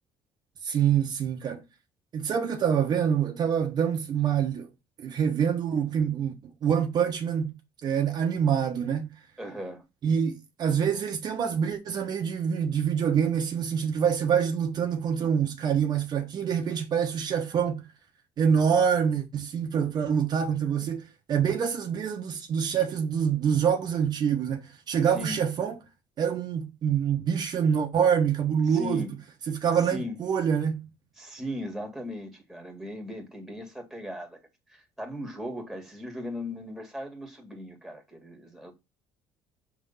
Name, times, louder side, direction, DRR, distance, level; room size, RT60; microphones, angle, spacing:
voice 1, 0.6-1.6 2.1-4.7 5.0-7.6 7.8-9.1 10.0-17.8 18.4-25.8 26.2-29.1 29.5-30.9, right 7 dB, 45° right, 1.2 m, -26 dB
voice 2, 9.4-9.8 20.8-20.9 25.1-25.4 28.7-29.1 29.9-30.2 31.2-34.4 34.7-38.7, left 1 dB, ahead, 2.1 m, -38 dB
6.3 x 3.7 x 5.6 m
cardioid pair, 130°, 10 cm